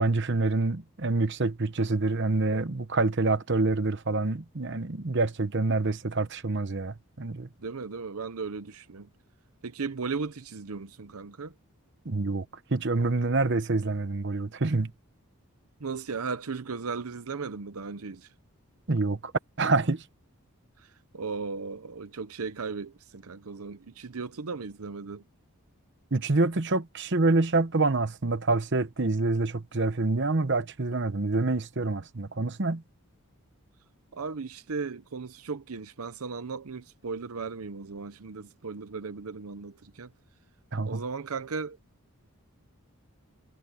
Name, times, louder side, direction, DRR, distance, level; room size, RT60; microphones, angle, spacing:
voice 1, 0.0-7.5 12.0-12.5 12.7-14.9 18.9-19.3 19.6-20.0 26.1-32.8 40.7-41.0, right 3 dB, 50° right, 1.0 m, -26 dB
voice 2, 7.6-9.1 9.6-11.5 15.8-18.3 21.1-25.2 34.1-40.1 40.9-41.8, right 4 dB, 75° right, 0.8 m, -36 dB
head